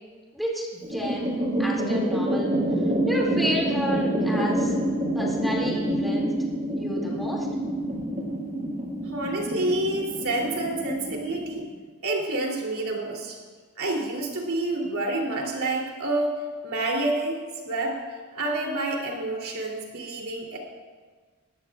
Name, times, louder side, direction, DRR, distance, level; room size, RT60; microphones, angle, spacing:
voice 1, 0.3-2.6 3.1-4.9 5.1-6.3 6.8-7.5, equal, ahead, -4 dB, 2.3 m, -31 dB
sound 1, 0.8-11.6, right 1 dB, 35° right, 3.0 m, -27 dB
voice 2, 9.0-11.7 12.0-13.4 13.8-17.4 17.6-18.0 18.3-20.6, right 2 dB, 70° right, -1 dB, 3.0 m, -28 dB
20.5 x 14.5 x 2.4 m, 1.5 s
head